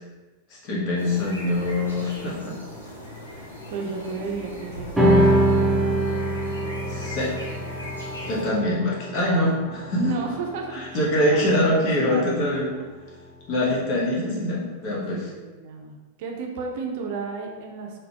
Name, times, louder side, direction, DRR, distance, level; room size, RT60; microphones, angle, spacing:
voice 1, 0.5-2.5 6.9-7.3 8.2-10.0 10.7-12.7 13.5-15.3, left 1 dB, 40° left, -5 dB, 1.3 m, -24 dB
sound 1, 1.0-8.5, left 1 dB, 80° left, 0.9 m, -39 dB
voice 2, 3.7-5.5 9.2-9.6 10.0-12.3 12.7-12.8 15.1-18.1, right 5 dB, 50° right, 1 dB, 0.6 m, -33 dB
sound 2, 5.0-11.7, right 1 dB, 5° right, 0.6 m, -24 dB
3.9 x 3.2 x 2.9 m, 1.2 s
figure-of-eight pair, 90°, 0 cm